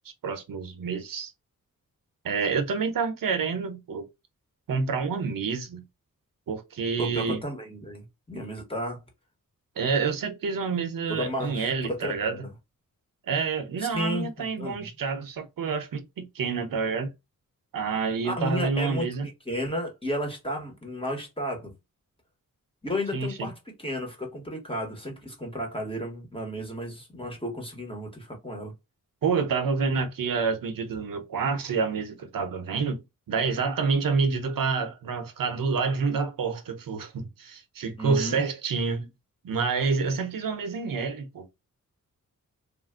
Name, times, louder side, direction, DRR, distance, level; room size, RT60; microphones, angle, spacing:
voice 1, 0.2-1.3 2.2-4.0 4.7-5.9 6.5-7.4 9.8-12.4 13.3-17.1 17.7-19.3 23.1-23.5 29.2-33.0 33.3-39.1 39.4-41.5, right 5 dB, 80° right, 0.8 m, -28 dB
voice 2, 7.0-9.0 11.1-12.5 13.8-14.9 18.2-21.7 22.8-28.7 38.0-38.4, equal, 15° left, 1.2 m, -33 dB
3.4 x 2.5 x 2.4 m
wide cardioid pair, 115°, 33 cm